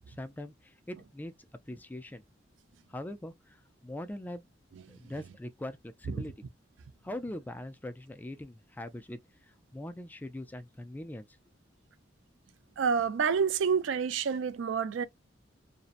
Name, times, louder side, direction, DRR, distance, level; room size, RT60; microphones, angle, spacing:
voice 1, 0.1-1.3 1.7-2.2 2.9-3.6 3.8-4.5 4.9-6.3 7.0-11.3, left 1 dB, 10° left, 0.3 m, -42 dB
voice 2, 12.8-15.0, right 6 dB, 85° right, 0.4 m, -28 dB
2.6 x 2.1 x 2.4 m
head